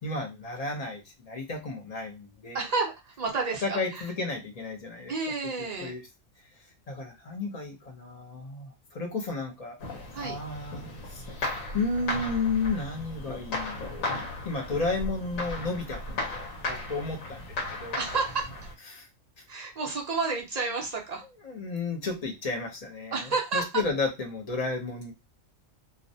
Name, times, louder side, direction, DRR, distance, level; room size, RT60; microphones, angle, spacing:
voice 1, 0.0-2.7 3.6-5.1 5.8-6.0 6.9-9.8 10.2-16.2 16.6-18.0 18.9-19.1 19.4-19.5 21.4-25.1, left 3 dB, 50° left, 3 dB, 0.4 m, -33 dB
voice 2, 2.5-4.1 5.1-5.9 10.1-10.4 18.0-18.5 19.5-21.2 23.1-23.8, right 4 dB, 60° right, 0 dB, 0.4 m, -30 dB
sound 1, 9.8-18.7, left 2 dB, 85° left, 1.1 m, -36 dB
2.4 x 2.0 x 2.6 m, 0.24 s
omnidirectional pair, 1.4 m